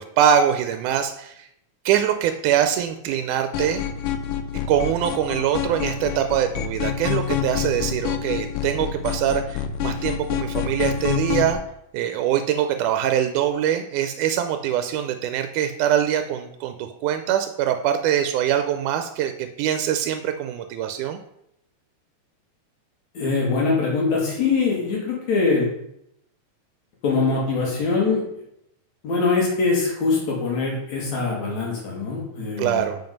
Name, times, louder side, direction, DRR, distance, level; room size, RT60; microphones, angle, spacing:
voice 1, 0.0-1.5 1.9-3.8 4.7-11.6 11.9-21.2 32.6-33.0, right 10 dB, 85° right, 8 dB, 2.0 m, -23 dB
sound 1, 3.5-11.5, left 9 dB, 90° left, 2.2 m, -27 dB
voice 2, 23.1-25.7 27.0-28.2 29.0-32.8, left 4 dB, 65° left, -3 dB, 3.4 m, -23 dB
7.7 x 5.4 x 5.2 m, 0.77 s
omnidirectional pair, 3.5 m